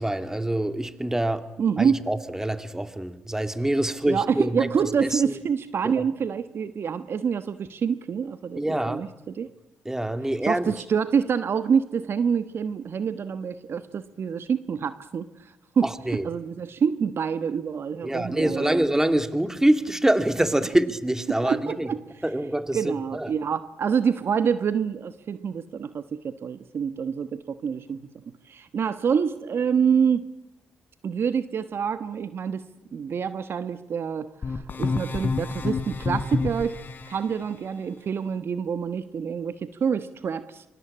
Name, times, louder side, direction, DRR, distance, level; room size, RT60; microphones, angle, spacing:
voice 1, 0.0-1.4 1.8-4.7 5.0-5.3 5.8-6.0 8.6-9.1 9.9-10.7 15.8-16.3 18.0-21.9 22.2-23.3, right 1 dB, 10° right, 2.3 m, -25 dB
voice 2, 1.6-2.0 4.0-9.5 10.4-18.7 21.3-22.0 22.7-28.0 28.5-30.2 31.0-32.6 32.9-36.8 37.1-40.6, right 7 dB, 55° right, 1.2 m, -27 dB
sound 1, 34.4-37.2, left 4 dB, 45° left, 3.9 m, -28 dB
25.5 x 25.0 x 8.6 m
supercardioid pair, 55°, 5 cm